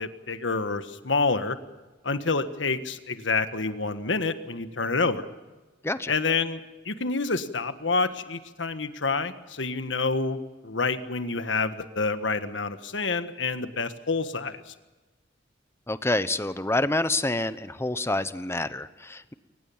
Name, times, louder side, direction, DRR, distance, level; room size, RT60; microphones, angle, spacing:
voice 1, 0.0-1.6 2.0-5.2 6.1-14.7, left 4 dB, 75° left, 10 dB, 1.5 m, -28 dB
voice 2, 15.9-19.3, left 2 dB, 15° left, 13 dB, 0.9 m, -27 dB
23.5 x 19.5 x 7.3 m, 1.2 s
head